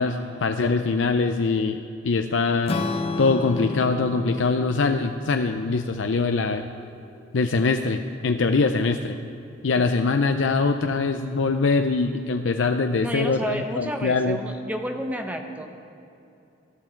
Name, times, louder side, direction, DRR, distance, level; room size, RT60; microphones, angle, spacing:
voice 1, 0.0-2.8 3.2-6.6 7.3-9.2 9.6-14.4, left 4 dB, 75° left, 7 dB, 0.5 m, -23 dB
Strum, 2.7-6.9, left 3 dB, 30° left, 0.7 m, -32 dB
voice 2, 13.0-15.7, equal, 10° right, 4 dB, 1.0 m, -31 dB
18.5 x 12.5 x 4.5 m, 2.7 s
head